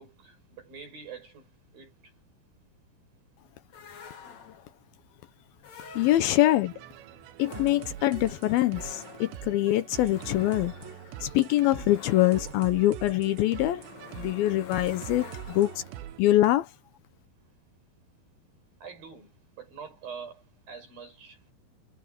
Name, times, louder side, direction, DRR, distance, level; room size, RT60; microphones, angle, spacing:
voice 1, 0.0-1.9 6.4-6.5 18.8-21.5, right 6 dB, 55° right, 8.9 m, -45 dB
sound 1, 3.7-4.8 5.6-6.7 7.4-16.1, left 6 dB, 45° left, 3.2 m, -48 dB
voice 2, 6.0-6.7 7.4-10.7 11.2-13.8 14.1-15.8 16.2-16.7, left 15 dB, 75° left, 2.4 m, -24 dB
Buildup loop, 6.5-16.2, right 12 dB, 85° right, 3.3 m, -43 dB
omnidirectional pair, 4.9 m